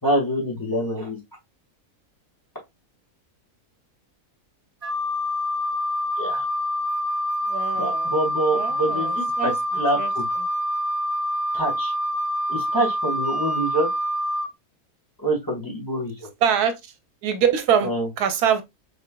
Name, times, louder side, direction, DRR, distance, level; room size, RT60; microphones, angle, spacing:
voice 1, 0.0-1.2 6.2-6.4 7.7-10.2 11.5-11.9 12.5-13.9 15.2-16.3 17.8-18.1, right 1 dB, 15° left, 1.6 m, -26 dB
Wind instrument woodwind instrument, 4.8-14.5, equal, 30° right, 0.9 m, -26 dB
voice 2, 7.5-8.1 8.5-9.5 10.0-10.1 16.4-16.8 17.2-17.9 18.2-18.6, right 8 dB, 85° right, 1.2 m, -23 dB
4.3 x 3.8 x 2.2 m
omnidirectional pair, 1.6 m